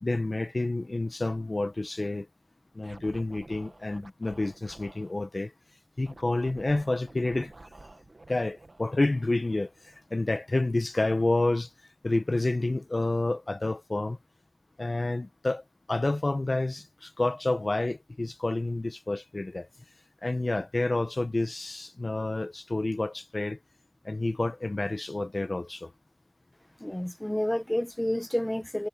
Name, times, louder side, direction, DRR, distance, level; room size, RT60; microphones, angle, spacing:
voice 1, 0.0-2.3 2.7-5.5 6.0-7.5 8.3-9.7 10.1-11.7 12.0-14.2 14.8-15.6 15.9-19.7 20.2-23.6 24.0-25.9, left 2 dB, 70° left, 1.0 m, -29 dB
Scratching (performance technique), 2.8-5.1 6.0-10.4, right 2 dB, 70° right, 1.4 m, -51 dB
voice 2, 26.8-28.9, left 1 dB, 20° left, 1.0 m, -29 dB
wide cardioid pair, 50°, 0 cm